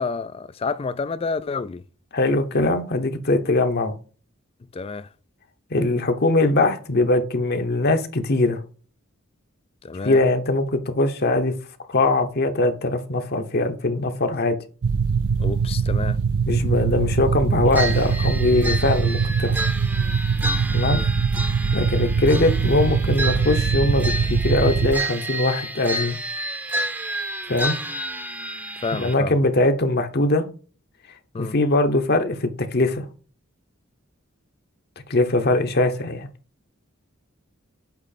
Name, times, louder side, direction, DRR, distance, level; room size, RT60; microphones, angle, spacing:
voice 1, 0.0-1.8 4.7-5.1 9.8-10.2 15.4-16.2 20.9-21.1 28.8-29.3 31.3-31.6, left 4 dB, 25° left, 0.3 m, -29 dB
voice 2, 2.1-3.9 5.7-8.6 10.0-11.5 11.9-14.6 16.5-19.5 20.7-21.0 21.7-26.2 27.5-27.8 28.9-30.4 31.4-33.1 35.1-36.3, left 2 dB, 50° left, 0.9 m, -21 dB
sound 1, 14.8-24.9, right 5 dB, 85° right, 0.5 m, -22 dB
sound 2, 17.7-29.1, right 1 dB, 10° right, 0.7 m, -30 dB
8.2 x 3.1 x 4.1 m
head